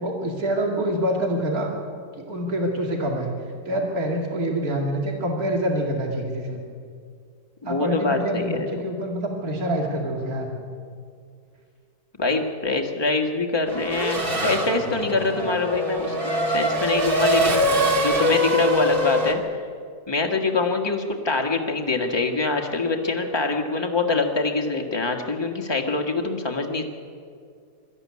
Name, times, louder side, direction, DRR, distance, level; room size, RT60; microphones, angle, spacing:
voice 1, 0.0-1.7 2.3-3.3 3.7-6.6 7.6-10.5, right 1 dB, 60° right, 1 dB, 2.8 m, -26 dB
voice 2, 7.6-8.8 12.2-16.2 16.5-17.6 18.0-19.4 20.1-26.8, left 3 dB, 15° left, 2 dB, 1.6 m, -24 dB
Race car auto racing / Accelerating revving vroom, 13.7-19.3, equal, 35° right, 2.1 m, -23 dB
21.5 x 13.5 x 9.6 m, 2.2 s
omnidirectional pair, 1.7 m